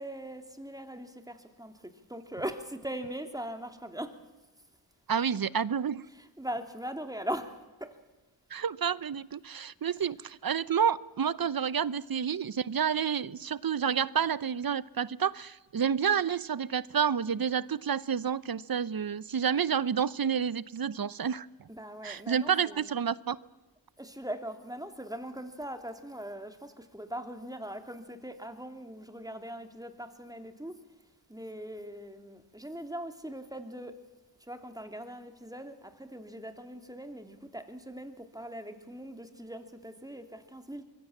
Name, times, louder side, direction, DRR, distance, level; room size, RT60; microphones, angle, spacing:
voice 1, 0.0-4.2 6.1-8.0 21.7-23.0 24.0-30.8 31.3-33.9 34.4-40.8, right 1 dB, 10° right, 7 dB, 3.1 m, -40 dB
voice 2, 5.1-6.0 8.5-21.5 22.0-23.4, right 7 dB, 50° right, 19 dB, 0.8 m, -29 dB
25.5 x 22.5 x 7.3 m, 1.1 s
cardioid pair, 55°, 46 cm